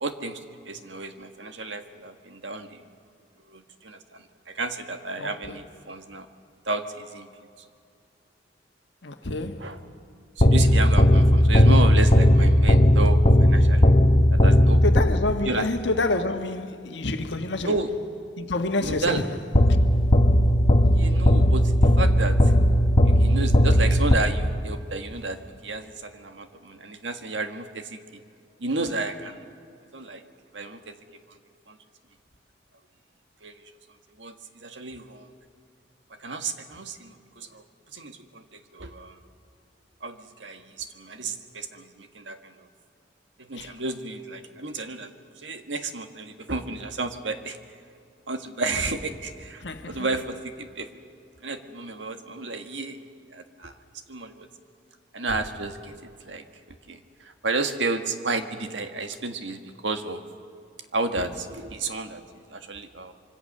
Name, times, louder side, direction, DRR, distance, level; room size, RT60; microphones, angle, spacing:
voice 1, 0.0-2.8 3.5-6.3 6.6-7.3 9.6-9.8 10.4-13.9 14.3-14.8 15.4-15.7 17.6-17.9 18.8-19.2 20.9-22.4 23.2-28.2 28.6-29.4 29.9-30.2 30.5-30.9 31.7-31.8 33.4-33.6 34.2-35.3 36.2-37.6 37.9-38.4 38.7-39.2 40.0-42.5 43.4-45.1 45.4-47.6 48.3-50.9 51.4-53.0 53.3-53.7 54.1-54.5 55.1-56.4 56.9-57.0 57.4-60.2 60.9-62.2 62.5-63.1, right 3 dB, 80° right, 1.7 m, -32 dB
voice 2, 5.2-5.6 9.0-9.7 14.8-17.7 18.4-19.3 43.6-43.7 49.6-50.1, left 2 dB, 70° left, 1.6 m, -28 dB
sound 1, 10.4-15.5 19.5-24.8, equal, 35° left, 1.1 m, -17 dB
26.0 x 24.0 x 6.7 m
head